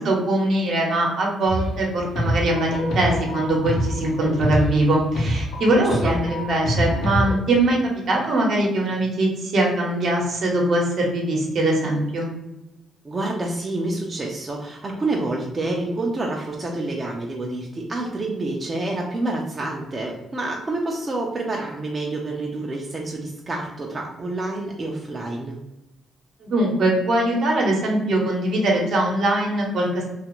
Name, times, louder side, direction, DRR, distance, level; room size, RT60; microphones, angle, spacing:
voice 1, 0.0-7.8 8.1-12.3 26.4-29.9, right 1 dB, 65° right, -1 dB, 0.8 m, -22 dB
sound 1, 1.5-1.9 2.1-7.4, equal, 80° left, 0.8 m, -26 dB
voice 2, 5.7-6.2 13.0-25.5, right 2 dB, 30° right, -1 dB, 0.4 m, -28 dB
2.5 x 2.4 x 2.9 m, 0.96 s
cardioid pair, 90°, 0 cm